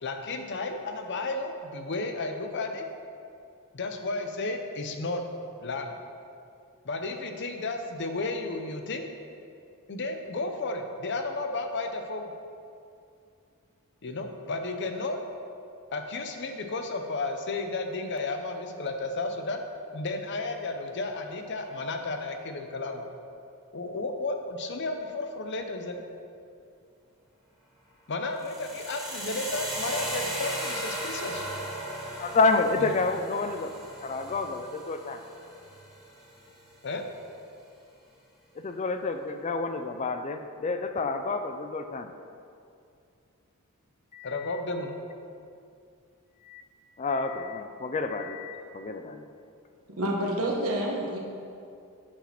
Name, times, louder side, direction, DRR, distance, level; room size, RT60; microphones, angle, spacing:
voice 1, 0.0-2.8 3.7-5.2 5.6-6.0 6.8-9.1 9.9-12.3 14.0-15.2 15.9-19.6 19.9-23.1 23.7-26.0 28.1-31.4 32.8-32.9 36.8-37.1 44.2-45.0, left 2 dB, 50° left, 5 dB, 0.7 m, -33 dB
sound 1, 28.4-36.4, right 1 dB, ahead, 1.6 m, -37 dB
voice 2, 32.2-33.7 34.0-35.2 38.6-42.1 44.1-44.6 46.4-46.6 47.0-49.3, left 3 dB, 30° left, 7 dB, 0.4 m, -29 dB
voice 3, 49.9-51.2, right 1 dB, 70° right, -1 dB, 1.4 m, -28 dB
8.6 x 5.0 x 5.9 m, 2.5 s
head